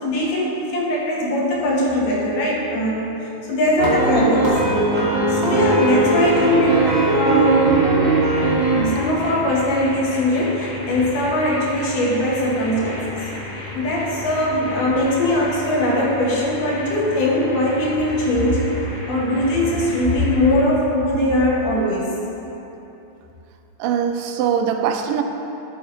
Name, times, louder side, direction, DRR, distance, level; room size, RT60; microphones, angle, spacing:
voice 1, 0.0-4.6 5.3-7.8 8.7-13.0 13.7-18.7 19.1-22.2, left 1 dB, 75° left, -4 dB, 2.8 m, -20 dB
sound 1, 3.8-9.9, equal, 40° right, 1.2 m, -36 dB
sound 2, 3.8-8.8, right 3 dB, 55° right, 2.5 m, -19 dB
sound 3, 5.6-20.6, left 2 dB, 60° left, 2.2 m, -33 dB
voice 2, 23.8-25.2, right 8 dB, 85° right, 6 dB, 2.2 m, -21 dB
12.5 x 6.5 x 3.1 m, 3.0 s
omnidirectional pair, 3.8 m